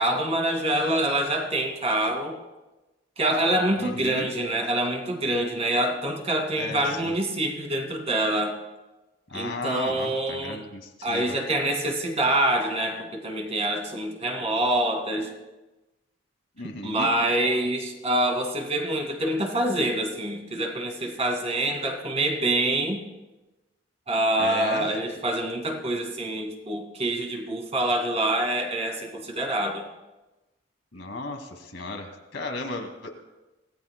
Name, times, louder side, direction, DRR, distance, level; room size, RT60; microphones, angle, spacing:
voice 1, 0.0-2.4 3.2-8.6 9.3-10.6 11.0-15.3 16.8-23.0 24.1-29.9, right 1 dB, 35° right, 2 dB, 2.2 m, -26 dB
voice 2, 3.8-4.3 6.6-7.1 9.3-11.4 16.6-17.1 24.4-24.9 30.9-33.1, left 2 dB, 75° left, 3 dB, 2.1 m, -35 dB
24.5 x 17.0 x 2.2 m, 1.1 s
head